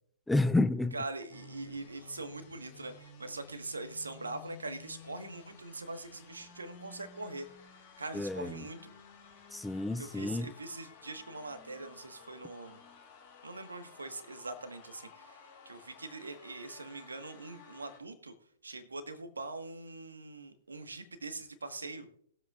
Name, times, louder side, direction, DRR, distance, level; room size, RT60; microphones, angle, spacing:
voice 1, 0.3-0.9 8.1-8.6 9.5-10.5, left 2 dB, 5° left, 0.4 m, -30 dB
voice 2, 0.9-7.5 8.0-8.9 10.0-12.8 13.4-15.4 15.6-18.3 18.6-22.1, right 2 dB, 80° right, 1.5 m, -42 dB
sound 1, 1.3-18.0, left 4 dB, 50° left, 3.5 m, -54 dB
20.5 x 7.8 x 2.5 m
figure-of-eight pair, 115°, 0 cm